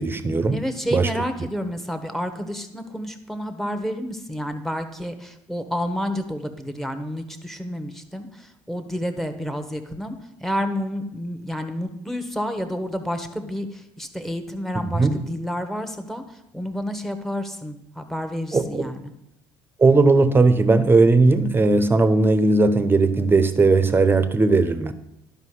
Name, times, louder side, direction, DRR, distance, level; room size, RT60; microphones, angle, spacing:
voice 1, 0.0-0.6 0.9-1.1 14.9-15.2 18.5-18.9 19.8-24.9, right 3 dB, 25° right, 11 dB, 0.9 m, -18 dB
voice 2, 0.5-16.2 16.5-19.1, equal, 5° left, 8 dB, 1.2 m, -30 dB
11.5 x 5.2 x 4.9 m, 0.84 s
hypercardioid pair, 70°, 9 cm